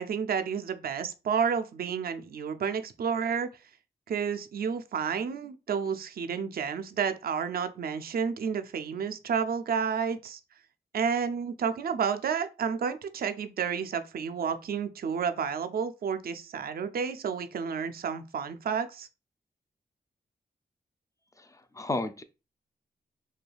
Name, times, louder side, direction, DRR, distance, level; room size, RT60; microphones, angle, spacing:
voice 1, 0.0-3.5 4.1-10.4 10.9-19.1, right 6 dB, 60° right, 0.4 m, -31 dB
voice 2, 21.4-22.2, left 2 dB, 20° left, 0.4 m, -33 dB
3.2 x 2.2 x 2.3 m
cardioid pair, 50°, 18 cm